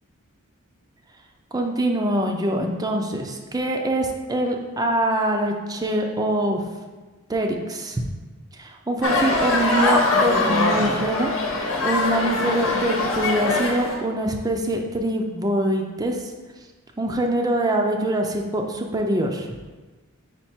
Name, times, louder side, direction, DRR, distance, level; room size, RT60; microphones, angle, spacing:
voice 1, 1.5-6.6 7.3-8.1 8.5-16.3 17.0-19.5, right 1 dB, 15° right, 2 dB, 0.4 m, -24 dB
sound 1, 9.0-14.0, left 2 dB, 65° left, 0.9 m, -22 dB
4.7 x 4.6 x 4.3 m, 1.3 s
head